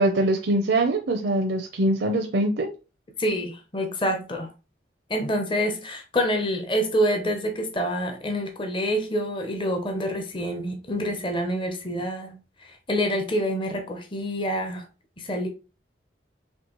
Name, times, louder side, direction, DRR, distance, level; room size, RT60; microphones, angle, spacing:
voice 1, 0.0-2.7, right 1 dB, 70° right, 0.5 m, -23 dB
voice 2, 3.2-4.5 5.1-14.8 15.2-15.5, equal, 25° left, 0.7 m, -27 dB
4.4 x 3.0 x 3.0 m
head